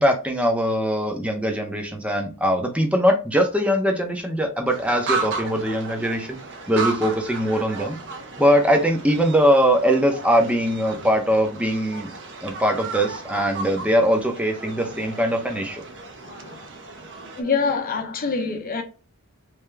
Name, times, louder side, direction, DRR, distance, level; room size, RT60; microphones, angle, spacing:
voice 1, 0.0-6.4 6.7-8.0 8.4-12.1 12.4-15.8, equal, 5° right, 0.6 m, -21 dB
sound 1, 4.7-17.4, right 4 dB, 55° right, 0.8 m, -34 dB
voice 2, 16.2-16.7 17.4-18.8, left 5 dB, 40° left, 0.8 m, -26 dB
3.4 x 2.8 x 3.2 m
head